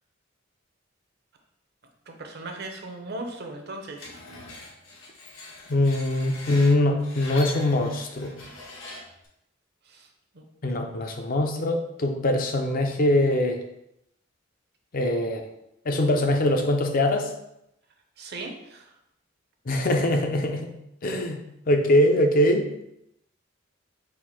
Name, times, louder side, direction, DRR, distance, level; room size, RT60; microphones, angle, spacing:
voice 1, 2.1-4.2 8.4-8.5 9.8-10.1 10.3-10.5 11.0-11.3 18.2-19.0, right 2 dB, 55° right, 4 dB, 0.7 m, -38 dB
Screech, 4.0-9.3, left 2 dB, 75° left, 1.0 m, -42 dB
voice 2, 5.7-8.3 10.6-13.6 14.9-15.4 15.9-17.3 19.7-20.7 21.0-22.7, left 1 dB, 45° left, 5 dB, 0.5 m, -23 dB
4.2 x 2.5 x 4.2 m, 0.81 s
head